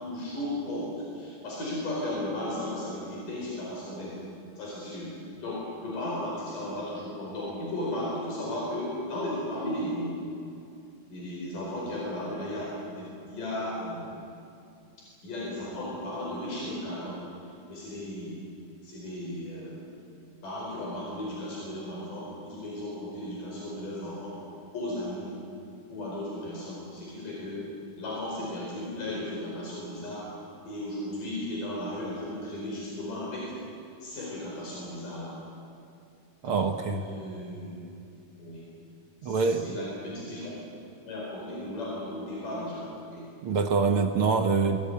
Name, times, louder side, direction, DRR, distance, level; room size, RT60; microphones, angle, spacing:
voice 1, 0.0-4.2 4.6-5.1 5.4-10.2 11.1-14.1 15.2-17.2 17.7-18.4 18.8-19.8 20.4-24.4 24.7-25.3 25.9-27.6 28.0-30.3 30.7-33.5 34.0-35.3 36.4-36.6 36.9-37.8 38.4-38.6 39.2-40.5 41.1-43.3, left 1 dB, 85° left, -4 dB, 6.4 m, -35 dB
voice 2, 36.4-37.1 39.2-39.8 43.4-44.8, right 4 dB, 60° right, 5 dB, 1.5 m, -25 dB
23.5 x 19.5 x 9.6 m, 2.5 s
omnidirectional pair, 3.7 m